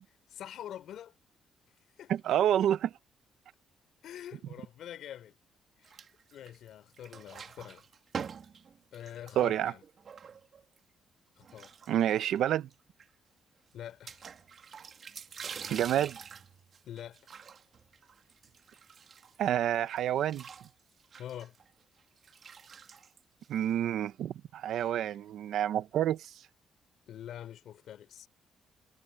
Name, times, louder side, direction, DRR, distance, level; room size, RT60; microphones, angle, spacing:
voice 1, 0.3-1.1 2.0-2.1 4.0-5.3 5.8-6.1 6.3-7.9 8.9-9.8 11.4-11.7 13.7-14.3 16.8-17.2 21.2-21.6 24.7-25.1 27.1-28.3, left 10 dB, 75° left, 3.6 m, -45 dB
voice 2, 2.1-2.9 9.4-9.7 11.9-12.7 15.7-16.2 19.4-20.4 23.5-26.4, right 11 dB, 75° right, 0.8 m, -28 dB
sound 1, 5.8-6.7 6.9-10.8 11.4-12.4 12.7-12.8 13.0-13.1 14.1-19.5 19.9-23.9, right 6 dB, 50° right, 2.0 m, -46 dB
cardioid pair, 90°, 0 cm